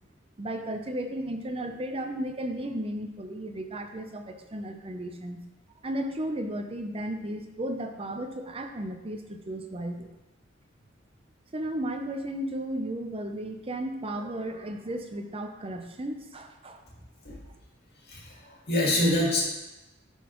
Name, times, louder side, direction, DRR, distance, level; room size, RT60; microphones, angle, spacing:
voice 1, 0.4-5.4 5.8-10.1 11.5-16.8, right 1 dB, 30° right, 5 dB, 0.6 m, -34 dB
voice 2, 18.0-19.4, left 1 dB, 55° left, -3 dB, 1.9 m, -26 dB
12.0 x 4.1 x 3.0 m, 1.0 s
head